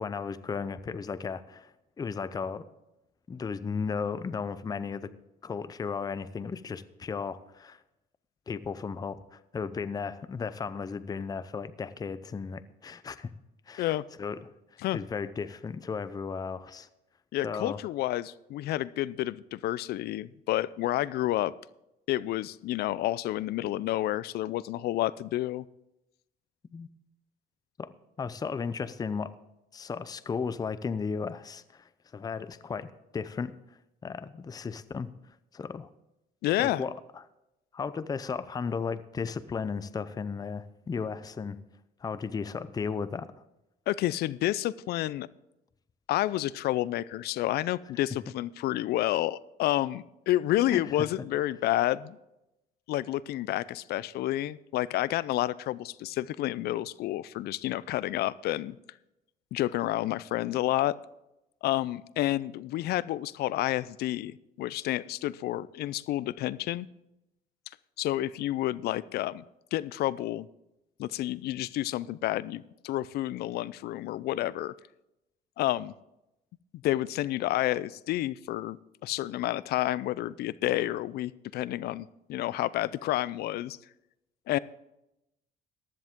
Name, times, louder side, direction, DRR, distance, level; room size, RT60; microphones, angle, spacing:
voice 1, 0.0-2.6 3.3-5.1 5.4-7.8 8.5-13.3 13.7-14.5 14.9-16.9 17.4-17.8 26.7-26.9 27.8-27.9 28.2-29.3 29.7-33.5 34.0-35.1 35.5-35.9 36.6-37.2 37.7-41.6 42.0-43.3 50.7-51.1, left 5 dB, 20° left, 14 dB, 0.5 m, -35 dB
voice 2, 17.3-21.5 22.1-25.6 36.4-36.8 43.9-45.3 46.1-52.2 52.9-58.8 59.5-61.0 61.6-66.9 68.0-69.4 69.7-70.5 71.0-74.7 75.6-75.9 76.8-78.8 79.0-83.8 84.5-84.6, left 15 dB, 70° left, 19 dB, 0.5 m, -30 dB
15.0 x 11.0 x 3.7 m, 0.89 s
cardioid pair, 110°, 17 cm